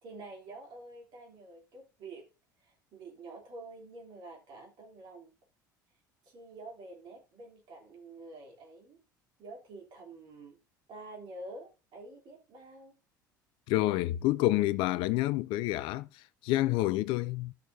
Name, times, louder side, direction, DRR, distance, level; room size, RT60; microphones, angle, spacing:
voice 1, 0.0-2.3 2.6-5.3 6.2-9.0 9.4-10.6 10.9-12.9, right 2 dB, 45° right, 3.2 m, -48 dB
voice 2, 13.7-17.5, left 17 dB, 50° left, 0.4 m, -28 dB
13.0 x 6.3 x 2.7 m
figure-of-eight pair, 65°, 11 cm